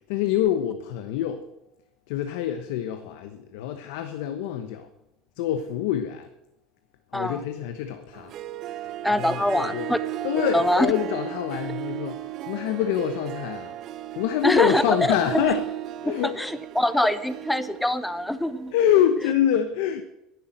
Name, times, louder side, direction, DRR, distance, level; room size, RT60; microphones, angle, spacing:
voice 1, 0.1-1.4 2.1-4.9 5.4-6.3 7.1-8.3 8.8-8.9 9.2-9.9 10.2-13.8 14.2-15.6 16.0-16.4 18.7-20.0, left 10 dB, 80° left, 8 dB, 1.0 m, -26 dB
Harp, 8.1-19.3, right 13 dB, 60° right, 0.7 m, -36 dB
voice 2, 9.0-10.0 10.5-10.9 14.4-15.2 16.2-18.7, left 1 dB, 5° left, 11 dB, 1.1 m, -24 dB
10.5 x 10.5 x 7.9 m, 0.92 s
supercardioid pair, 85°, 0 cm